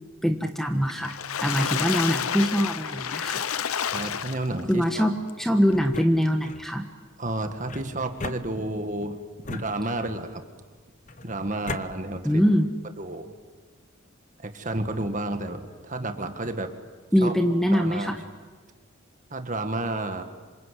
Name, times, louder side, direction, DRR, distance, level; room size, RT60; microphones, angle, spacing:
voice 1, 0.2-3.4 4.7-6.9 12.2-12.7 17.1-18.2, equal, ahead, 5 dB, 1.3 m, -23 dB
Water / Splash splatter, 0.9-4.7 5.3-5.4 5.7-5.8, left 8 dB, 90° left, 0.7 m, -29 dB
voice 2, 3.9-5.1 7.2-9.2 9.5-10.4 11.2-12.4 13.0-13.3 14.4-16.7 17.2-17.3 17.7-18.1 19.3-20.2, right 2 dB, 35° right, 7 dB, 1.8 m, -31 dB
sound 1, 5.7-6.7 7.7-8.9 9.4-10.3 11.1-11.9, left 3 dB, 35° left, 0.9 m, -38 dB
27.0 x 25.0 x 8.4 m, 1.4 s
head